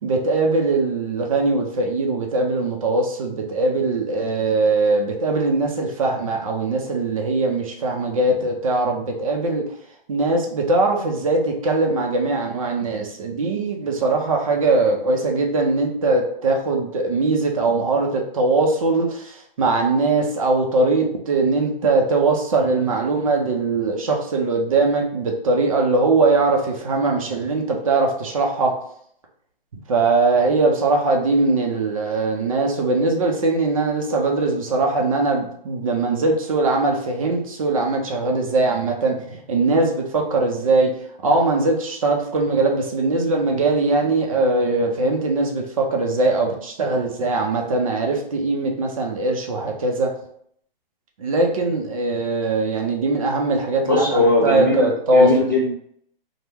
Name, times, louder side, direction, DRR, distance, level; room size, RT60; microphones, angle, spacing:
voice 1, 0.0-9.6 10.1-28.7 29.9-40.9 41.2-50.1 51.2-55.3, right 3 dB, 35° right, 1 dB, 0.5 m, -21 dB
voice 2, 53.8-55.7, left 2 dB, 20° left, -6 dB, 0.3 m, -19 dB
2.8 x 2.1 x 3.4 m, 0.66 s
hypercardioid pair, 165°, 29 cm